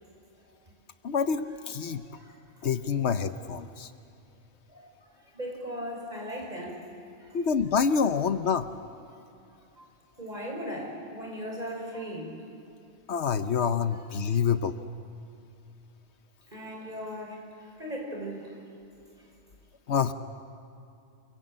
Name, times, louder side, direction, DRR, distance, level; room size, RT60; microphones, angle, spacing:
voice 1, 1.0-2.0 2.6-3.9 7.3-8.7 13.1-14.7 19.9-20.1, left 6 dB, 80° left, 10 dB, 1.2 m, -27 dB
voice 2, 1.9-2.3 4.7-4.9 5.3-6.8 9.8-9.9 10.2-12.4 16.5-17.4 17.8-18.6, equal, 40° right, 0 dB, 5.7 m, -37 dB
28.0 x 23.0 x 8.9 m, 2.6 s
omnidirectional pair, 1.1 m